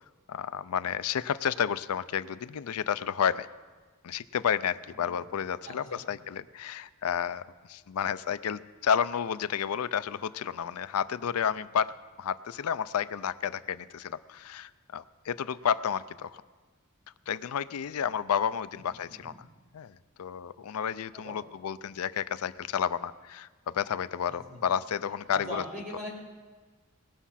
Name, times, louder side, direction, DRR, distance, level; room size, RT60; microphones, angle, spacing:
voice 1, 0.3-3.5 4.0-16.4 17.3-19.3 19.7-25.6, left 8 dB, 90° left, 15 dB, 0.4 m, -31 dB
voice 2, 4.9-5.3 5.7-6.0 18.7-19.4 21.1-21.4 24.3-24.6 25.3-26.1, left 1 dB, 40° right, -4 dB, 3.6 m, -42 dB
19.5 x 7.2 x 5.7 m, 1.4 s
head